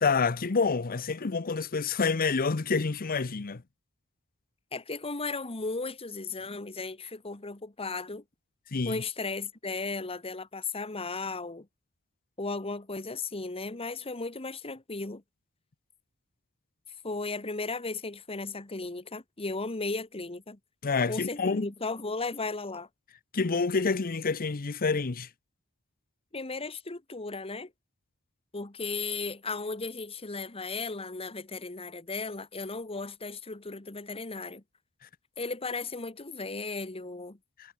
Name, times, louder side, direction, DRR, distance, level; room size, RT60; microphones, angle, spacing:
voice 1, 0.0-3.6 8.7-9.0 20.8-21.7 23.3-25.3, left 4 dB, 40° left, 0.7 m, -28 dB
voice 2, 4.7-8.2 8.8-11.7 12.4-15.2 17.0-20.6 21.1-22.9 26.3-27.7 28.5-34.6 35.4-37.4, left 3 dB, 25° left, 1.5 m, -35 dB
head